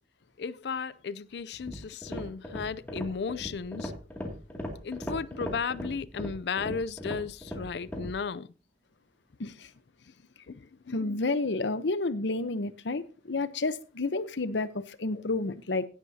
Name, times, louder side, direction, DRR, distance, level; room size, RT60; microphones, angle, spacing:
voice 1, 0.4-3.9 4.8-8.5 9.4-9.5 10.5-11.2 15.1-15.2, left 5 dB, 65° left, 0.4 m, -35 dB
sound 1, 1.5-8.2, equal, 10° left, 2.4 m, -38 dB
voice 2, 9.4-9.7 10.9-15.9, left 3 dB, 85° left, 0.8 m, -30 dB
16.5 x 8.4 x 2.8 m
head